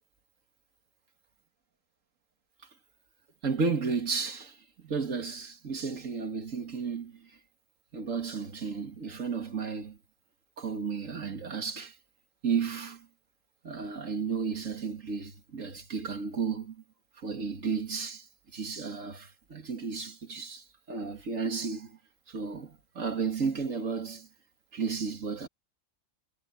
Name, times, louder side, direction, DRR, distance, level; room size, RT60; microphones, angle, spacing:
voice 1, 3.4-7.3 7.9-10.0 10.6-11.9 12.4-13.1 13.6-16.8 17.2-18.3 18.5-22.0 22.3-24.3 24.7-25.5, right 5 dB, 80° right, 2.3 m, -33 dB
omnidirectional pair, 1.3 m